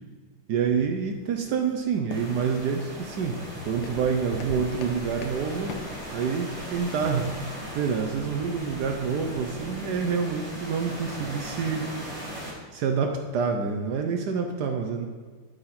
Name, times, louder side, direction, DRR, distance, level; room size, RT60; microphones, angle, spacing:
voice 1, 0.5-5.8 6.1-11.9 12.7-15.0, right 6 dB, 75° right, 4 dB, 1.0 m, -27 dB
sound 1, 0.6-9.8, left 4 dB, 70° left, 1.4 m, -44 dB
sound 2, 2.1-12.5, equal, 15° right, 1.6 m, -38 dB
11.5 x 4.1 x 4.2 m, 1.5 s
omnidirectional pair, 2.4 m